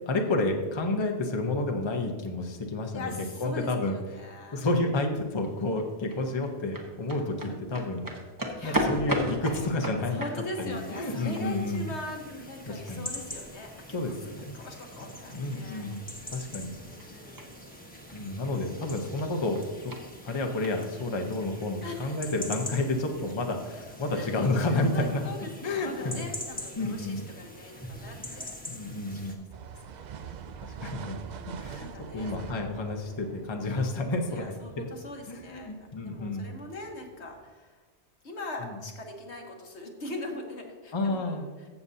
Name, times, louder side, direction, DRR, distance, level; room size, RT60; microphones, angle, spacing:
voice 1, 0.1-3.1 3.4-4.0 4.5-8.1 8.6-10.2 10.6-11.9 12.3-13.1 13.9-14.6 15.3-16.1 16.3-16.7 18.1-19.9 20.2-25.3 25.6-26.2 26.8-27.2 28.3-29.5 30.6-31.2 31.6-31.9 32.1-34.9 35.3-36.5 38.6-38.8 40.9-41.5, left 2 dB, 25° left, 3 dB, 0.8 m, -30 dB
voice 2, 2.9-4.6 8.6-8.9 10.1-13.7 14.2-16.2 16.8-17.5 21.8-22.2 24.1-24.4 24.7-28.5 29.1-29.3 29.7-30.1 31.0-32.7 34.3-37.8 38.2-41.7, left 2 dB, 70° left, 1 dB, 1.6 m, -41 dB
sound 1, 5.2-20.9, equal, 20° right, 1.0 m, -39 dB
sound 2, 10.7-29.4, left 1 dB, 10° left, 1.2 m, -44 dB
sound 3, 29.5-37.5, right 6 dB, 55° right, 0.5 m, -45 dB
15.0 x 7.0 x 2.8 m, 1.4 s
omnidirectional pair, 1.2 m